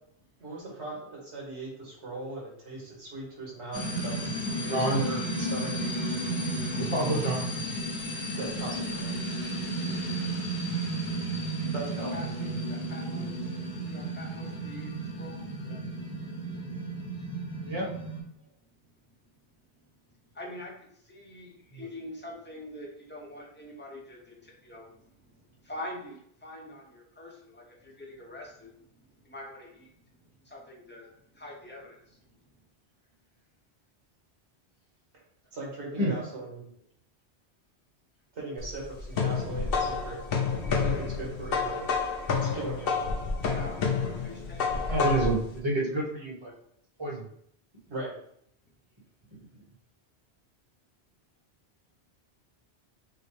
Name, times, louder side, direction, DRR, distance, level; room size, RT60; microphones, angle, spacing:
voice 1, 0.4-4.2 4.6-5.8 8.4-9.1 11.7-12.4 35.5-36.6 38.3-40.2 40.7-41.9 42.3-42.9 47.9-48.2, right 2 dB, 85° right, -3 dB, 1.8 m, -38 dB
sound 1, 3.7-18.2, right 1 dB, 80° left, 1.5 m, -33 dB
voice 2, 4.7-5.2 6.5-7.5 10.4-10.6 15.6-15.8 17.6-17.9 21.7-21.9 36.0-36.1 44.9-46.5 47.0-47.3, right 1 dB, 25° right, -4 dB, 1.3 m, -29 dB
voice 3, 12.1-15.4 16.0-16.3 17.3-17.4 20.3-28.8 29.1-32.2 43.4-45.0, left 1 dB, 10° left, -2 dB, 0.8 m, -45 dB
sound 2, 38.6-45.4, left 5 dB, 60° left, 0.9 m, -29 dB
6.6 x 2.2 x 3.3 m, 0.69 s
omnidirectional pair, 1.1 m